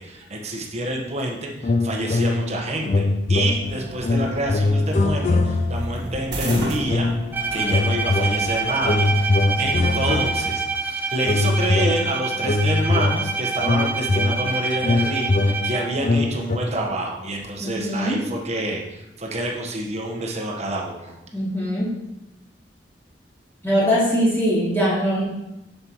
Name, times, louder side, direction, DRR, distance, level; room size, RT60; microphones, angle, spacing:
voice 1, 0.0-7.1 7.5-21.1, right 1 dB, 40° right, 0 dB, 1.1 m, -28 dB
sound 1, 1.6-2.6 2.8-5.9 6.4-7.3 7.6-10.7 11.2-16.6, left 2 dB, 40° left, 0.5 m, -22 dB
sound 2, 3.6-10.4, right 1 dB, 65° right, 1.6 m, -34 dB
Bowed string instrument, 7.3-16.1, right 4 dB, 10° right, 0.6 m, -27 dB
voice 2, 17.6-18.2 21.3-21.9 23.6-25.2, equal, 15° left, -9 dB, 2.8 m, -21 dB
7.5 x 6.8 x 3.0 m, 0.92 s
head